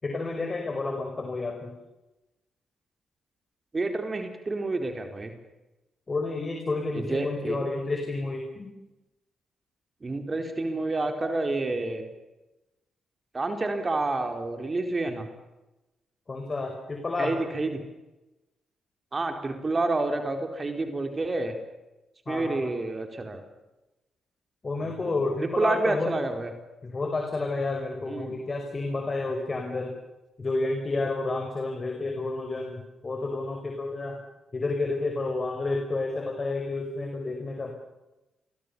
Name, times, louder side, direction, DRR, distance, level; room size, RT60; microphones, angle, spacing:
voice 1, 0.0-1.7 6.1-8.7 16.3-17.4 22.3-22.7 24.6-26.1 26.8-29.9 30.4-34.2 34.5-37.8, left 3 dB, 35° left, 3 dB, 5.9 m, -30 dB
voice 2, 3.7-5.3 6.9-7.6 10.0-12.0 13.3-15.3 17.2-17.8 19.1-21.5 22.3-23.4 24.8-25.1 25.4-26.5 28.1-28.4, right 2 dB, 35° right, 6 dB, 4.4 m, -29 dB
29.5 x 23.5 x 7.1 m, 1.0 s
hypercardioid pair, 45°, 0 cm